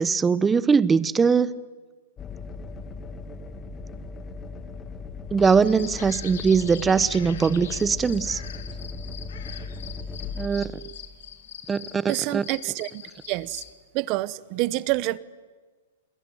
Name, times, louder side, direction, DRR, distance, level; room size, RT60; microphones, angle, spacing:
voice 1, 0.0-1.6 5.3-8.4 10.4-10.7 11.7-12.4, right 5 dB, 15° right, 17 dB, 1.0 m, -21 dB
sound 1, 2.2-11.3 13.3-13.7, left 3 dB, 20° left, 1.8 m, -38 dB
sound 2, 5.4-13.7, left 9 dB, 75° left, 2.5 m, -43 dB
voice 2, 12.1-13.6 13.9-15.2, right 19 dB, 40° right, 19 dB, 1.0 m, -27 dB
29.5 x 22.0 x 9.2 m, 1.4 s
hypercardioid pair, 130°, 0 cm